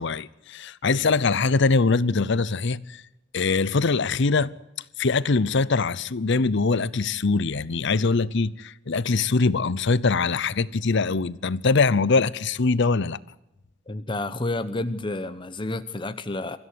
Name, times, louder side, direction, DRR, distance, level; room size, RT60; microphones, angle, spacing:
voice 1, 0.0-3.0 3.3-4.5 5.0-13.2, left 4 dB, 60° left, 0.7 m, -23 dB
voice 2, 13.9-16.6, left 2 dB, 25° left, 0.9 m, -30 dB
24.0 x 14.5 x 9.5 m
head